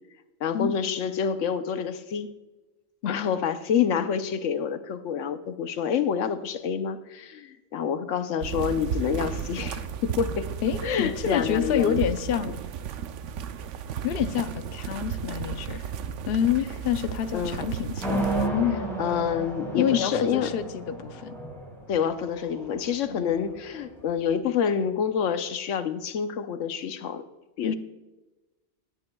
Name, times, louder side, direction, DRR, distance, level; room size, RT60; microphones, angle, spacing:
voice 1, 0.4-2.3 3.1-10.5 10.8-12.0 17.3-17.6 19.0-20.5 21.9-27.2 27.6-27.7, left 7 dB, 90° left, 10 dB, 1.1 m, -27 dB
sound 1, 8.4-18.5, right 8 dB, 85° right, 1.0 m, -34 dB
voice 2, 10.6-12.6 14.0-15.9 16.3-18.8 19.7-21.4 23.0-23.4 27.6-27.7, left 9 dB, 60° left, 10 dB, 0.8 m, -28 dB
sound 2, 18.0-24.1, right 1 dB, ahead, 4.0 m, -32 dB
20.0 x 8.8 x 2.3 m, 1.1 s
omnidirectional pair, 1.2 m